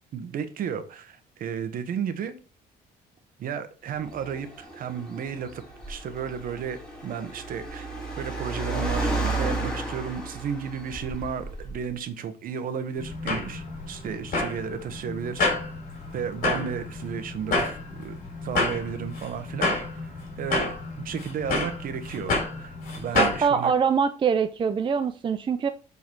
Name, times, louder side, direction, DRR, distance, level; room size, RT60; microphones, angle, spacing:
voice 1, 0.1-2.3 3.4-5.6 5.9-7.9 8.1-15.5 16.1-18.2 18.4-20.1 20.4-23.7, right 7 dB, 55° right, 1.1 m, -33 dB
Car, 4.0-11.9, right 2 dB, 5° left, 2.5 m, -33 dB
sound 1, 13.0-23.4, left 3 dB, 55° left, 3.4 m, -29 dB
voice 2, 23.1-25.7, right 6 dB, 30° right, 0.4 m, -24 dB
7.5 x 4.0 x 4.6 m
cardioid pair, 110°, 17 cm